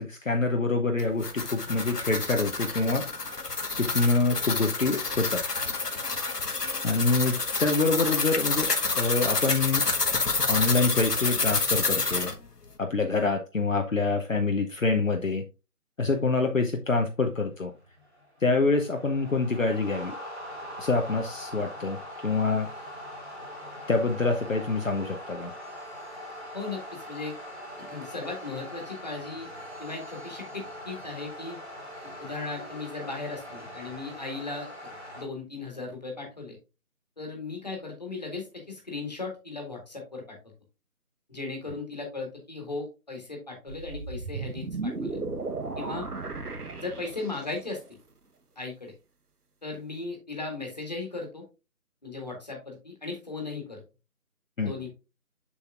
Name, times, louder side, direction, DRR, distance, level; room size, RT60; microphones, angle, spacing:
voice 1, 0.0-3.1 3.8-5.4 6.8-9.9 10.5-12.3 12.8-15.5 16.0-17.7 18.4-20.2 20.8-22.0 22.2-22.7 23.9-25.5 54.6-54.7, left 3 dB, 55° left, 4 dB, 0.9 m, -26 dB
sound 1, 1.0-12.3, left 3 dB, 90° left, 1.2 m, -28 dB
sound 2, 17.3-35.2, equal, 45° right, 2.8 m, -42 dB
voice 2, 26.5-27.4 27.9-29.5 29.8-31.6 32.2-34.7 35.1-36.6 37.2-40.4 41.3-45.2 45.8-46.1 46.8-47.8 48.5-48.9 49.6-51.4 52.0-53.8 54.6-54.9, left 3 dB, 25° left, 1 dB, 1.7 m, -37 dB
sound 3, 43.7-47.7, right 3 dB, 75° right, 1.2 m, -35 dB
7.0 x 6.4 x 2.4 m, 0.29 s
figure-of-eight pair, 165°, 46 cm